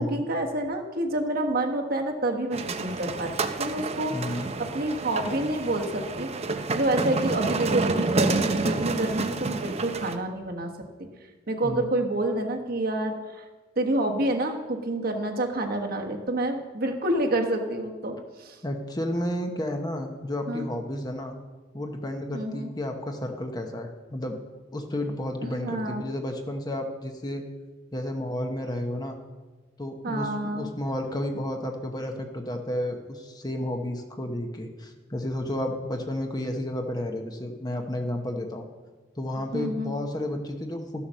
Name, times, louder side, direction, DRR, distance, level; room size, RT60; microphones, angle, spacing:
voice 1, 0.0-4.4 4.7-6.3 6.7-10.7 11.5-13.4 13.8-18.6 20.5-20.7 22.3-22.7 25.4-26.0 30.0-30.7 39.5-39.9, right 1 dB, 55° right, 2 dB, 1.3 m, -28 dB
sound 1, 2.5-10.2, right 3 dB, 35° right, 0.7 m, -29 dB
voice 2, 4.1-4.6 11.6-12.0 18.6-21.3 21.7-24.4 24.7-27.4 27.9-29.2 29.8-38.7 39.2-41.0, left 1 dB, 20° left, 4 dB, 1.0 m, -32 dB
13.0 x 7.1 x 6.3 m, 1.3 s
head